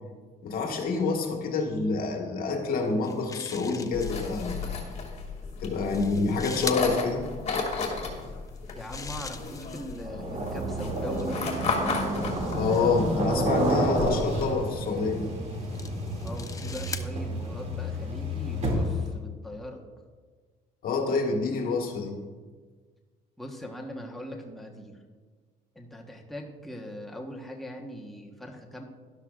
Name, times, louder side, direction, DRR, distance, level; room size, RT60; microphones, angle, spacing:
voice 1, 0.4-4.6 5.6-7.3 12.5-15.3 20.8-22.1, left 4 dB, 60° left, 2 dB, 1.7 m, -27 dB
sound 1, 2.8-4.8 5.6-6.9 8.5-10.1 11.0-13.1 13.9-14.3 15.1-17.1, left 4 dB, 20° left, 0.6 m, -42 dB
sound 2, 3.9-14.5, left 4 dB, 40° left, 2.4 m, -34 dB
voice 2, 8.7-11.4 16.2-19.8 23.4-25.0 25.7-28.8, left 1 dB, ahead, 0 dB, 1.2 m, -40 dB
sound 3, 10.0-19.1, right 1 dB, 40° right, 2.5 m, -30 dB
12.0 x 11.5 x 2.5 m, 1.5 s
cardioid pair, 110°, 17 cm